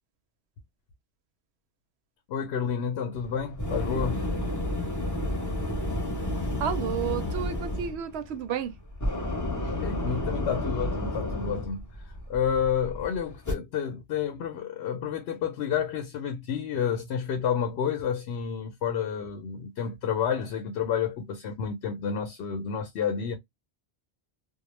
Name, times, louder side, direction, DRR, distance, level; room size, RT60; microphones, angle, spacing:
voice 1, 2.3-4.2 9.8-23.4, left 7 dB, 90° left, 0.8 m, -30 dB
sound 1, 3.1-13.5, left 1 dB, 20° left, 0.7 m, -31 dB
voice 2, 6.6-8.7, right 8 dB, 90° right, 0.8 m, -31 dB
2.2 x 2.0 x 3.0 m
omnidirectional pair, 1.1 m